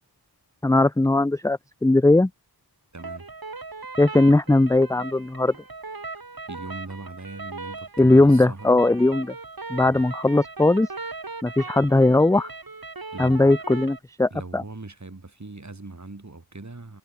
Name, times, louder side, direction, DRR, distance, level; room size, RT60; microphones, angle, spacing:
voice 1, 0.6-2.3 4.0-5.5 8.0-9.3 9.7-10.9 11.4-12.5 13.2-14.6, left 2 dB, 10° left, 0.5 m, -19 dB
voice 2, 2.9-3.3 6.5-8.8 9.8-10.0 13.1-13.6 14.3-17.0, right 3 dB, 45° right, 3.7 m, -40 dB
sound 1, 3.0-14.0, right 3 dB, 60° right, 3.2 m, -38 dB
wide cardioid pair, 45°, 40 cm